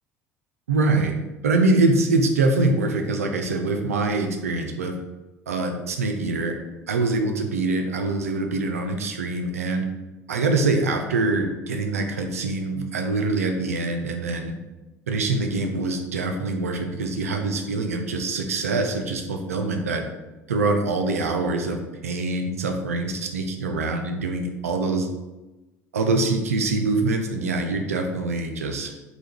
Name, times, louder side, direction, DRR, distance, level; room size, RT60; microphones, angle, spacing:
voice 1, 0.7-1.2 1.4-4.9 5.5-6.5 6.9-9.8 10.3-14.5 15.1-20.0 20.5-25.1 25.9-28.9, right 3 dB, 75° right, 5 dB, 0.3 m, -24 dB
3.4 x 2.2 x 2.8 m, 1.1 s
figure-of-eight pair, 60°, 8 cm